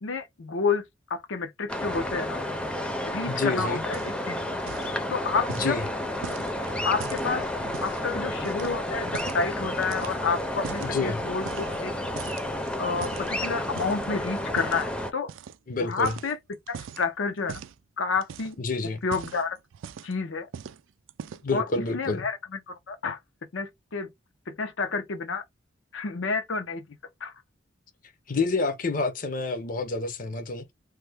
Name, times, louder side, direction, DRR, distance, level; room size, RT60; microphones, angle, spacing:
voice 1, 0.0-0.8 1.1-2.4 3.1-4.5 5.1-5.8 6.8-7.4 7.8-12.0 12.8-15.3 15.8-16.4 16.7-17.6 18.0-18.6 19.0-19.6 20.0-20.5 21.5-21.6 21.9-22.4 22.7-23.2 23.5-24.1 24.5-25.4 25.9-26.8 27.2-27.3, left 4 dB, 80° left, 0.7 m, -29 dB
Cumberland-Oystercatchers, 1.7-15.1, left 1 dB, 5° left, 0.5 m, -31 dB
voice 2, 3.2-3.8 5.5-5.9 10.8-11.2 15.7-16.1 18.6-19.0 21.4-22.3 28.3-30.7, left 3 dB, 45° left, 0.6 m, -28 dB
sound 1, 3.8-4.3 4.6-5.0 5.5-8.0 8.4-9.5 9.8-11.0 11.4-11.9 12.2-14.1 14.6-14.9 15.3-15.6 15.9-17.0 17.5-17.8 18.2-18.6 19.0-20.2 20.5-20.8 21.1-21.6, right 7 dB, 85° right, 0.3 m, -41 dB
3.2 x 2.1 x 3.4 m
head